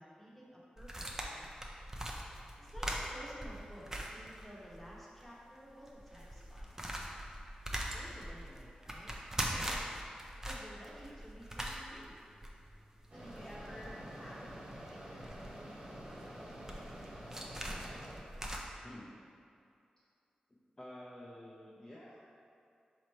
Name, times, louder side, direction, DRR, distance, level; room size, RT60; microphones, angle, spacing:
voice 1, 0.0-1.5 2.6-6.8 7.7-9.1 9.5-9.6 10.4-12.1 13.1-14.5 14.7-15.9, equal, 5° left, -6 dB, 1.0 m, -53 dB
sound 1, 0.8-4.9 5.2-5.3 5.8-18.6, right 1 dB, 20° right, 0.6 m, -42 dB
Mechanisms, 13.1-18.2, equal, 50° right, 1.2 m, -48 dB
voice 2, 20.8-22.2, left 1 dB, 25° left, -7 dB, 0.6 m, -50 dB
3.9 x 3.1 x 4.3 m, 2.5 s
cardioid pair, 60°, 3 cm